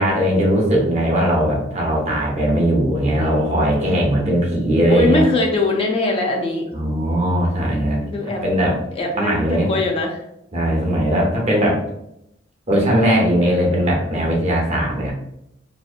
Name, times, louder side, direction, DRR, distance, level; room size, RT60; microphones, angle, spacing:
voice 1, 0.0-5.2 6.7-8.8 9.1-9.7 10.5-11.8 12.7-15.1, equal, 35° right, -2 dB, 0.7 m, -19 dB
voice 2, 3.2-4.1 4.9-6.6 8.1-8.4 9.0-9.3 9.7-10.2, left 2 dB, 30° left, 1 dB, 0.4 m, -21 dB
2.7 x 2.0 x 2.4 m, 0.79 s
head